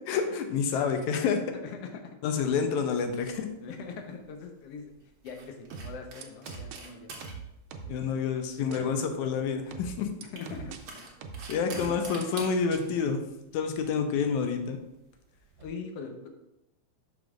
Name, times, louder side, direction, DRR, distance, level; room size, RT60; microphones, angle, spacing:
voice 1, 0.1-1.4 2.2-3.5 7.9-10.1 11.5-13.2 13.5-14.8, left 6 dB, 85° left, 5 dB, 2.1 m, -28 dB
voice 2, 1.5-2.0 3.6-4.9 5.2-7.3 7.8-8.2 8.6-9.1 10.2-11.1 11.6-12.2 15.6-16.3, left 5 dB, 65° left, 4 dB, 1.7 m, -42 dB
sound 1, 3.0-15.7, right 3 dB, 50° right, 1.5 m, -48 dB
sound 2, 5.7-6.8 7.2-8.0 8.7-8.8 9.7-10.8 11.2-12.2 12.7-12.8, right 6 dB, 85° right, 2.1 m, -41 dB
11.5 x 5.2 x 2.5 m, 0.90 s
omnidirectional pair, 3.4 m